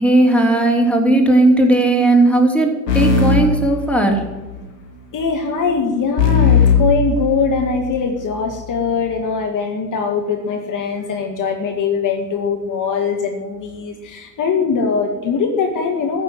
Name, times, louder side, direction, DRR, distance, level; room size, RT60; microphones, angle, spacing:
voice 1, 0.0-4.2, right 2 dB, 5° left, 2 dB, 3.2 m, -15 dB
sound 1, 2.9-4.5 6.2-7.9, left 5 dB, 85° left, 2.4 m, -17 dB
voice 2, 5.1-16.2, left 5 dB, 40° left, 3 dB, 2.2 m, -21 dB
15.0 x 6.7 x 9.7 m, 1.1 s
figure-of-eight pair, 65°, 47 cm